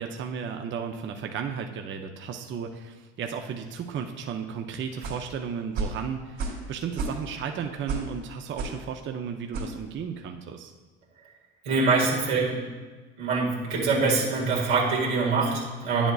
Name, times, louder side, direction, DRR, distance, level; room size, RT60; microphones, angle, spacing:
voice 1, 0.0-10.7, right 7 dB, 35° right, 4 dB, 0.6 m, -34 dB
sound 1, 5.0-5.3 5.7-6.0 6.4-6.7 6.9-7.4 7.9-8.1 8.6-8.8 9.5-9.7, right 3 dB, 65° right, 2.2 m, -31 dB
voice 2, 11.7-12.6 13.2-16.1, right 4 dB, 85° right, -3 dB, 1.9 m, -24 dB
9.7 x 7.1 x 2.4 m, 1.3 s
hypercardioid pair, 75°, 32 cm